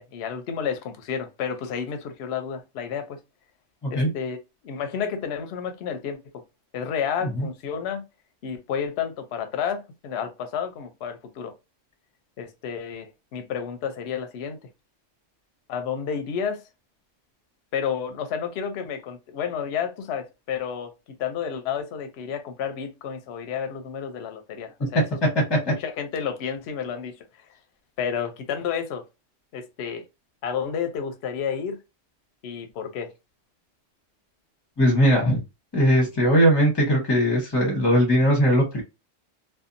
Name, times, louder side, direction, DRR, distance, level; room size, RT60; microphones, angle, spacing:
voice 1, 0.0-3.2 3.9-4.4 4.6-6.2 6.7-8.0 8.4-11.5 12.4-14.6 15.7-16.6 17.7-20.9 21.2-25.2 25.7-27.1 28.0-29.0 29.5-30.0 30.4-31.8 32.4-33.1, left 7 dB, 65° left, 0.8 m, -31 dB
voice 2, 34.8-35.4 35.7-38.8, equal, 20° left, 0.8 m, -19 dB
2.7 x 2.3 x 2.5 m
omnidirectional pair, 1.3 m